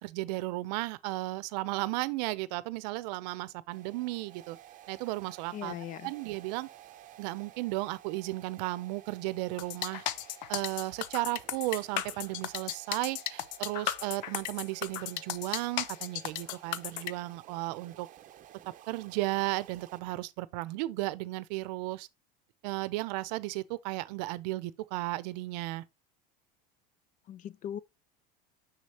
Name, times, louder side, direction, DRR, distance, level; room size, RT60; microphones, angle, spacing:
voice 1, 0.0-4.6 4.9-5.7 6.0-6.7 7.2-10.0 10.5-18.1 18.9-22.1 22.6-25.8, right 19 dB, 75° right, 0.7 m, -34 dB
sound 1, 3.7-20.0, right 12 dB, 40° right, 0.7 m, -54 dB
voice 2, 5.5-6.1 27.3-27.8, left 10 dB, 40° left, 0.5 m, -39 dB
sound 2, 9.6-17.1, left 12 dB, 90° left, 0.6 m, -35 dB
6.4 x 6.2 x 3.0 m
supercardioid pair, 125°, 21 cm